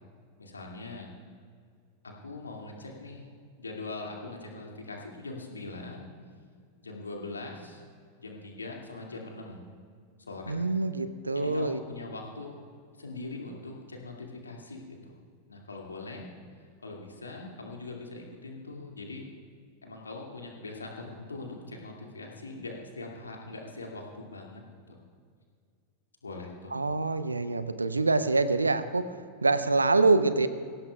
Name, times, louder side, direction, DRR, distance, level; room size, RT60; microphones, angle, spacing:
voice 1, 0.4-1.1 2.0-3.3 3.6-6.1 6.8-7.8 8.2-9.7 10.3-10.6 11.3-12.5 13.0-15.2 15.5-16.3 16.8-19.2 19.8-24.6 24.9-25.0 26.2-26.8, left 3 dB, 75° left, 0 dB, 2.2 m, -41 dB
voice 2, 10.5-11.8 26.7-29.1 29.4-30.5, right 3 dB, 80° right, 13 dB, 0.7 m, -25 dB
22.0 x 17.0 x 2.3 m, 2.1 s
figure-of-eight pair, 90°, 0 cm